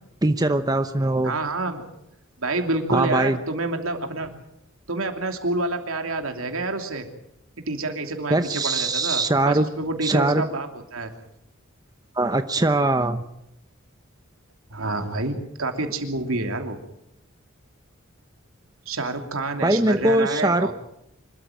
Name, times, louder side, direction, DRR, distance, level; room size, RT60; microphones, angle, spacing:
voice 1, 0.2-1.3 2.9-3.4 8.3-9.7 10.0-10.4 12.2-13.2 19.6-20.7, right 2 dB, 20° right, 9 dB, 0.8 m, -21 dB
voice 2, 1.2-1.8 2.4-4.3 4.9-7.1 7.7-11.1 14.7-16.8 18.9-20.7, right 2 dB, 80° right, 5 dB, 2.9 m, -28 dB
25.5 x 13.5 x 9.1 m, 0.84 s
head